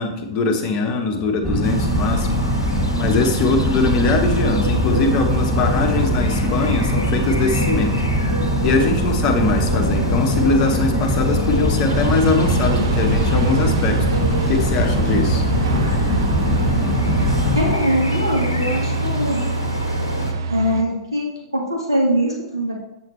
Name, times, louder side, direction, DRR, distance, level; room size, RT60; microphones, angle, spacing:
voice 1, 0.0-2.4 2.7-8.0 8.6-14.1 14.5-15.5, left 4 dB, 40° left, 5 dB, 1.2 m, -22 dB
sound 1, 1.4-17.7, equal, 10° right, 2.5 m, -21 dB
sound 2, 1.6-20.3, left 1 dB, 85° left, 1.0 m, -27 dB
sound 3, 11.9-20.8, right 4 dB, 60° right, 0.6 m, -26 dB
voice 2, 17.5-19.4 20.2-22.7, equal, 80° right, -2 dB, 1.7 m, -22 dB
8.1 x 7.7 x 3.2 m, 0.91 s
figure-of-eight pair, 100°, 2 cm